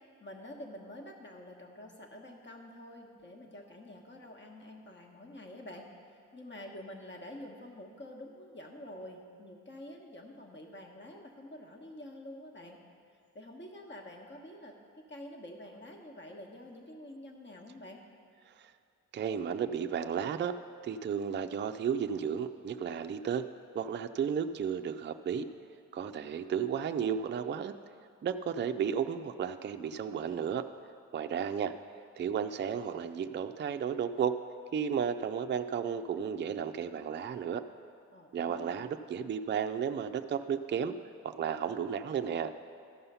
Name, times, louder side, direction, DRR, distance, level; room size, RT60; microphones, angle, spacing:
voice 1, 0.2-5.9 6.3-12.8 13.3-14.7 15.1-18.0 38.1-38.8, left 1 dB, 35° left, 2 dB, 1.3 m, -48 dB
voice 2, 19.1-20.5 20.8-23.4 23.7-25.5 25.9-27.7 28.2-30.6 31.1-31.7 32.2-34.3 34.7-37.6 38.3-41.0 41.2-42.5, right 7 dB, 35° right, 7 dB, 0.4 m, -33 dB
13.5 x 5.5 x 5.5 m, 2.3 s
supercardioid pair, 55°, 34 cm